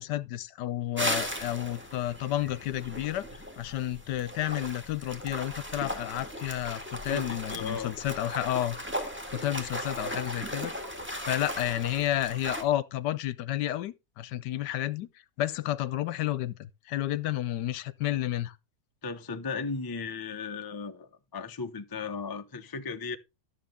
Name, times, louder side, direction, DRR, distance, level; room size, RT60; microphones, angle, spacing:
voice 1, 0.0-8.8 9.3-10.7 11.3-15.1 15.4-18.6, left 13 dB, 75° left, 1.3 m, -31 dB
sound 1, 1.0-12.6, equal, 5° right, 1.8 m, -37 dB
voice 2, 7.1-8.0 19.0-23.2, left 4 dB, 30° left, 0.3 m, -36 dB
12.5 x 7.2 x 3.6 m
omnidirectional pair, 1.9 m